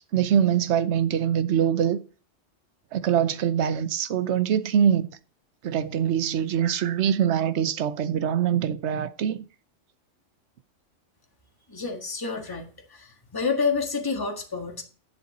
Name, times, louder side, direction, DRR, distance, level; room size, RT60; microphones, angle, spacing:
voice 1, 0.0-2.0 2.9-5.1 5.6-9.5, right 9 dB, 70° right, 1.0 m, -23 dB
voice 2, 11.7-12.7 13.3-14.8, left 5 dB, 20° left, 1.6 m, -28 dB
11.5 x 7.4 x 4.1 m
omnidirectional pair, 1.2 m